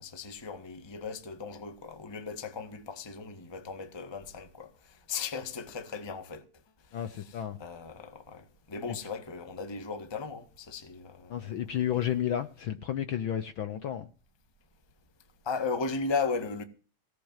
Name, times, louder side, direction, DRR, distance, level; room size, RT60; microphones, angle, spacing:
voice 1, 0.0-4.7 5.1-6.4 6.9-11.6 11.9-12.0 15.4-16.6, left 4 dB, 15° left, 0.8 m, -36 dB
voice 2, 6.9-7.6 8.9-9.0 11.3-14.1, left 10 dB, 75° left, 1.1 m, -32 dB
17.5 x 6.7 x 7.4 m
omnidirectional pair, 3.3 m